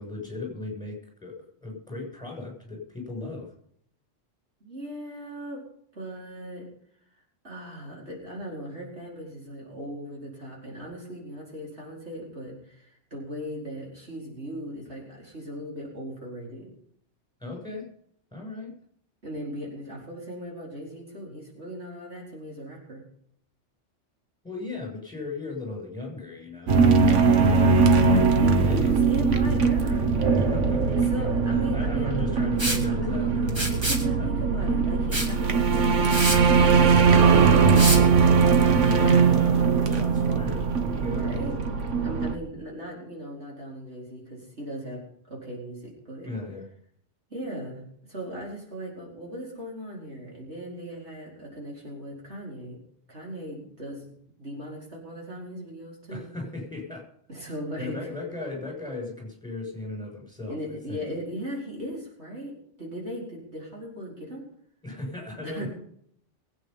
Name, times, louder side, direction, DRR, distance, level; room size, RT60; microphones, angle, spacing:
voice 1, 0.0-3.5 17.4-17.9 18.3-18.8 24.4-28.9 30.2-34.3 35.1-35.2 38.8-41.2 46.2-46.7 56.1-57.1 57.8-61.1 64.8-65.7, left 2 dB, 5° left, -1 dB, 6.8 m, -37 dB
voice 2, 4.6-5.7 5.9-6.7 7.4-16.7 19.2-23.0 28.4-30.1 31.1-32.5 32.9-38.1 41.1-41.6 42.0-45.0 45.3-46.3 47.3-52.8 53.1-54.1 54.4-56.3 57.3-58.1 60.5-64.4 65.4-65.7, equal, 65° right, -2 dB, 4.9 m, -38 dB
sound 1, 26.7-42.3, right 5 dB, 85° right, 1.6 m, -20 dB
Liquid, 32.6-32.8 33.5-34.0 35.1-35.3 35.7-35.8 36.1-36.4 37.7-38.0, right 1 dB, 20° right, 2.0 m, -27 dB
22.5 x 9.1 x 5.4 m, 0.68 s
omnidirectional pair, 1.2 m